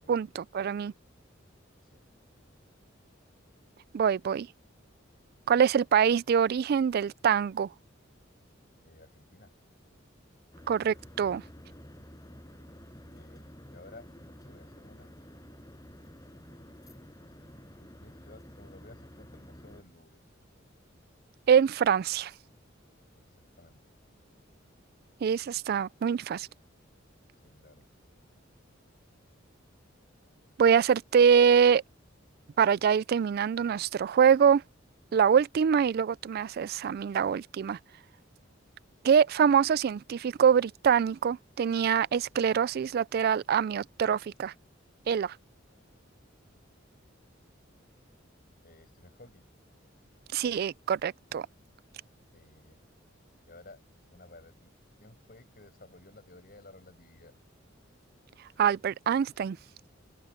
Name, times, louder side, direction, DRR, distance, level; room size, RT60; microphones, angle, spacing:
voice 1, 0.1-0.9 3.9-4.5 5.5-7.7 10.7-11.4 21.5-22.3 25.2-26.5 30.6-31.8 32.6-34.6 35.1-37.8 39.0-44.5 45.1-45.3 50.3-51.4 58.6-59.6, right 7 dB, 50° right, 0.3 m, -24 dB
voice 2, 8.8-9.5 13.1-14.1 14.4-15.1 17.8-20.2 23.1-23.8 27.3-28.1 45.7-45.9 46.5-47.0 48.6-49.4 52.3-52.8 53.5-53.8 54.1-54.7 55.0-57.4, left 2 dB, 50° left, 7.9 m, -55 dB
sound 1, 10.5-19.8, equal, 20° left, 6.4 m, -50 dB
open air
head